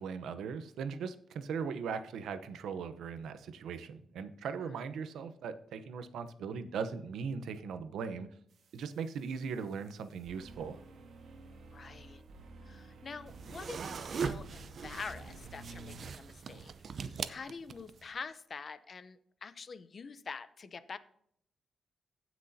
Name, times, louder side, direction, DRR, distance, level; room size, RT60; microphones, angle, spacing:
voice 1, 0.0-8.3 8.7-10.8, right 6 dB, 90° right, 11 dB, 0.8 m, -39 dB
sound 1, 8.5-16.0, right 2 dB, 75° right, 1.5 m, -53 dB
voice 2, 11.7-12.2 12.7-16.7 17.0-21.0, left 5 dB, 45° left, 13 dB, 0.7 m, -46 dB
sound 2, 13.3-18.0, right 6 dB, 55° right, 0.6 m, -40 dB
16.5 x 6.1 x 2.8 m, 0.70 s
cardioid pair, 95°, 0 cm